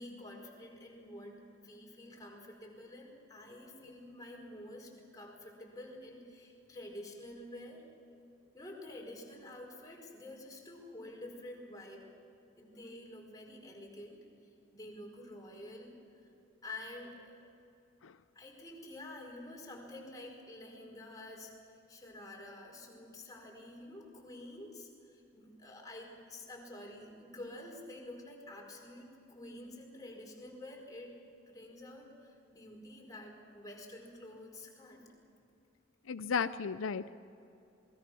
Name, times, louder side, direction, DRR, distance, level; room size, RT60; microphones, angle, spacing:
voice 1, 0.0-7.8 8.5-12.1 12.6-14.3 14.7-16.3 16.6-17.4 18.3-21.5 21.9-31.1 31.5-35.0, left 1 dB, 20° left, -1 dB, 4.8 m, -49 dB
voice 2, 36.1-37.1, left 6 dB, 85° left, 13 dB, 0.6 m, -34 dB
27.5 x 21.0 x 6.2 m, 2.7 s
head